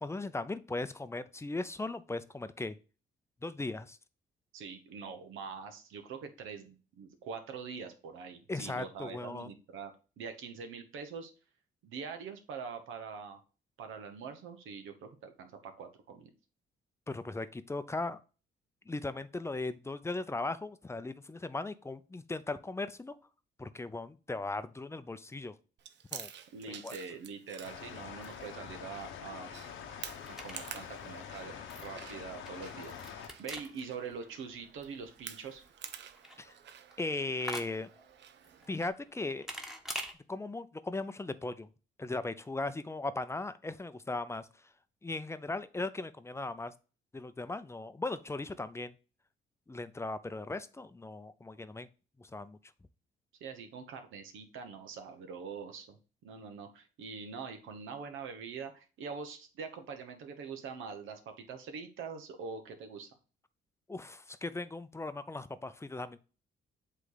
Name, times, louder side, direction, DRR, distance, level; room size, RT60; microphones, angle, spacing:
voice 1, 0.0-2.8 3.4-4.0 8.5-9.5 17.1-18.2 18.9-23.2 23.6-25.5 26.1-26.3 26.8-27.0 36.4-36.5 37.0-37.9 38.7-39.5 40.3-41.7 42.0-44.5 45.0-46.7 47.1-48.9 49.7-51.9 52.2-52.6 63.9-66.2, left 2 dB, 15° left, 13 dB, 0.5 m, -38 dB
voice 2, 4.5-11.3 11.8-13.4 13.8-16.3 26.5-29.5 30.3-35.6 53.4-63.1, right 5 dB, 85° right, 7 dB, 1.2 m, -44 dB
Chewing mastication, 25.8-38.9, right 9 dB, 65° right, 0.7 m, -51 dB
sound 1, 27.6-33.3, left 8 dB, 80° left, 1.0 m, -45 dB
sound 2, 28.9-40.1, equal, ahead, 1.2 m, -48 dB
8.1 x 3.3 x 4.0 m, 0.35 s
cardioid pair, 90°, 20 cm